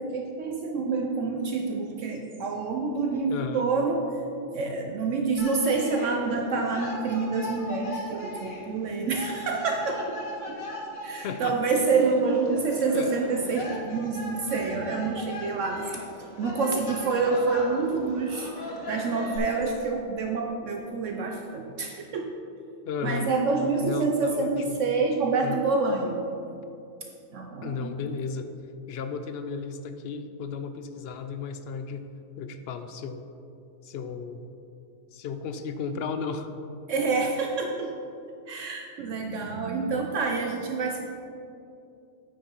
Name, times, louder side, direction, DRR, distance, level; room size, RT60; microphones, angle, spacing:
voice 1, 0.0-4.0 4.5-10.2 10.5-10.6 11.0-16.0 16.4-22.3 23.0-26.2 27.0-27.9 36.9-37.9 38.5-41.0, right 4 dB, 70° right, 2 dB, 1.0 m, -27 dB
voice 2, 3.3-3.7 11.2-11.6 12.9-13.1 22.9-23.3 23.8-24.8 25.4-25.6 27.6-28.5 28.9-32.1 32.4-33.2 33.8-34.4 35.1-36.5, left 5 dB, 60° left, 9 dB, 0.7 m, -34 dB
sound 1, 5.4-19.4, left 1 dB, 85° left, 1.9 m, -39 dB
9.0 x 6.5 x 4.4 m, 2.6 s
omnidirectional pair, 1.4 m